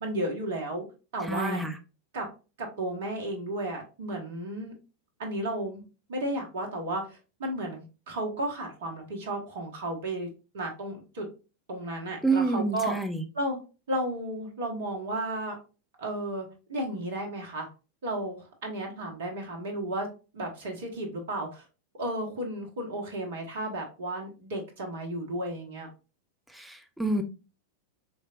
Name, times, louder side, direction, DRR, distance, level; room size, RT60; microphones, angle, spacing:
voice 1, 0.0-0.9 1.1-1.6 2.1-2.3 2.6-4.7 5.2-5.8 6.1-10.3 10.5-11.3 11.7-12.9 13.3-13.6 13.9-15.6 16.0-17.7 18.0-20.1 20.3-21.6 22.0-25.9, right 1 dB, 55° right, 3 dB, 1.0 m, -33 dB
voice 2, 1.3-1.7 12.2-13.2 26.5-27.2, right 3 dB, 5° right, 6 dB, 0.6 m, -28 dB
4.5 x 3.2 x 2.4 m, 0.32 s
figure-of-eight pair, 90°, 0 cm